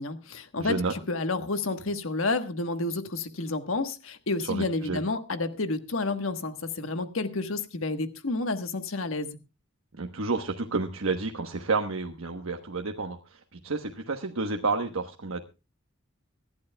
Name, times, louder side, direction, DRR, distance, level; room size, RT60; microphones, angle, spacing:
voice 1, 0.0-9.4, left 3 dB, 75° left, 8 dB, 1.3 m, -30 dB
voice 2, 0.6-0.9 4.5-5.0 10.0-15.4, right 3 dB, 85° right, 3 dB, 1.1 m, -30 dB
25.0 x 11.5 x 2.3 m, 0.29 s
head